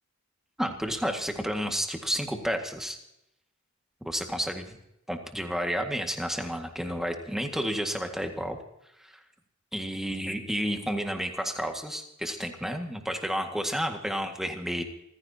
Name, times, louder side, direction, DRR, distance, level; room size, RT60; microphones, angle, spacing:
voice 1, 0.6-3.0 4.0-4.8 5.1-8.6 9.0-9.2 9.7-14.8, equal, ahead, 4 dB, 1.8 m, -31 dB
27.0 x 15.5 x 2.9 m, 0.83 s
head